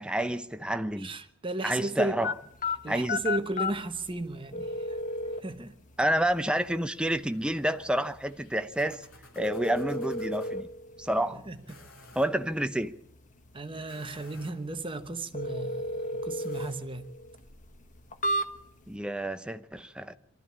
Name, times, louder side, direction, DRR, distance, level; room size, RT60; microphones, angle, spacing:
voice 1, 0.0-1.1 1.6-2.3 2.9-3.2 6.0-9.0 9.4-10.7 11.0-11.4 12.1-12.9 18.9-20.2, right 1 dB, 5° right, 0.7 m, -29 dB
voice 2, 1.0-2.2 2.8-5.0 5.4-5.8 11.3-11.6 13.5-17.1, right 2 dB, 25° right, 1.1 m, -35 dB
sound 1, 2.2-18.9, left 1 dB, 35° left, 1.3 m, -36 dB
sound 2, 6.4-10.5 11.5-12.3 13.7-14.7 16.4-16.8, left 2 dB, 65° left, 4.4 m, -55 dB
23.5 x 13.5 x 8.5 m
head